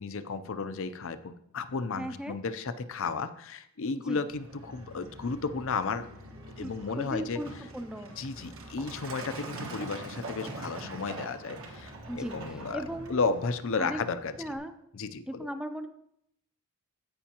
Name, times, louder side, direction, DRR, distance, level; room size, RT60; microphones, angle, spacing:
voice 1, 0.0-6.1 6.6-7.4 8.2-14.3 14.9-15.5, left 4 dB, 60° left, 11 dB, 0.6 m, -33 dB
voice 2, 2.0-2.4 3.9-4.2 6.4-7.5 7.7-8.1 12.1-13.3 13.8-14.0 14.4-14.7 15.3-15.9, equal, 5° right, 8 dB, 0.5 m, -37 dB
Truck, 4.3-14.6, right 2 dB, 65° right, 1.4 m, -44 dB
15.5 x 5.6 x 2.9 m, 0.73 s
head